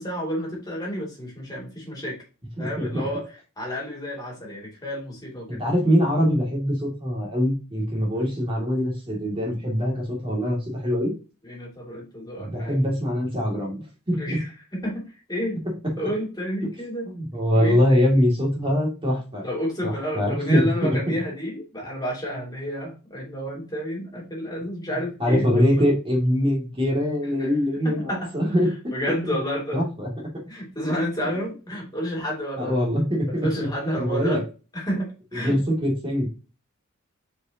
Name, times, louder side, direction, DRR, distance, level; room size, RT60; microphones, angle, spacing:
voice 1, 0.0-2.2 2.6-3.2 3.6-5.6 11.4-12.8 14.1-15.0 15.3-15.6 16.0-17.1 17.5-17.8 19.4-25.9 27.4-27.5 27.8-28.3 28.9-29.8 30.5-32.8 33.4-34.4 34.7-35.6, equal, 20° left, -2 dB, 2.8 m, -30 dB
voice 2, 5.5-11.1 12.4-14.4 17.1-19.4 19.8-21.0 25.2-28.7 29.7-30.1 32.6-33.7 34.0-34.4 35.3-36.3, equal, 25° right, -2 dB, 2.5 m, -23 dB
6.5 x 5.0 x 2.9 m, 0.33 s
head